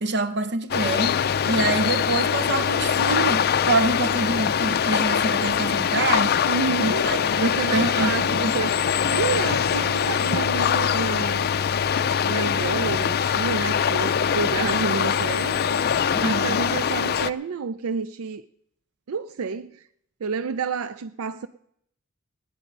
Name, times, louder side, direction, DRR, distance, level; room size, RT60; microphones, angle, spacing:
voice 1, 0.0-6.4 6.8-8.8 16.1-16.6, right 3 dB, 55° right, 0.8 m, -26 dB
sound 1, 0.7-17.3, left 7 dB, 50° left, 0.4 m, -23 dB
voice 2, 6.4-7.1 7.4-8.8 9.1-11.7 12.3-15.8 16.2-18.4 19.1-19.8 20.2-21.5, right 5 dB, 80° right, 0.4 m, -29 dB
17.5 x 10.5 x 5.2 m
head